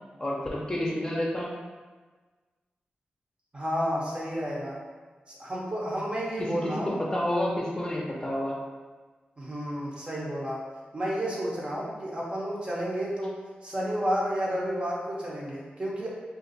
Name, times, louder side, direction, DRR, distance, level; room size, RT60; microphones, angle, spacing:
voice 1, 0.2-1.5 6.4-8.6, left 1 dB, 25° left, -4 dB, 0.6 m, -29 dB
voice 2, 3.5-4.8 5.3-7.0 9.4-10.7 10.9-16.1, equal, 30° right, -5 dB, 0.8 m, -31 dB
2.6 x 2.3 x 4.0 m, 1.4 s
wide cardioid pair, 80°, 3 cm